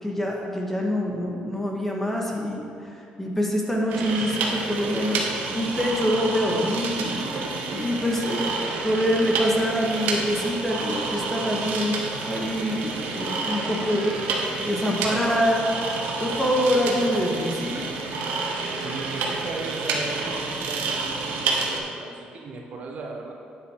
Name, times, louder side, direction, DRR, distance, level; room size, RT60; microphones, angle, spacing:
voice 1, 0.0-2.9 3.2-8.5 8.8-12.0 12.3-14.2 14.6-15.6 16.2-17.8, equal, 10° left, -2 dB, 1.9 m, -25 dB
sound 1, 3.9-21.8, right 4 dB, 85° right, 1.5 m, -29 dB
voice 2, 18.8-23.3, right 3 dB, 55° right, 1 dB, 1.3 m, -36 dB
9.3 x 9.1 x 4.8 m, 2.5 s
cardioid pair, 100°, 3 cm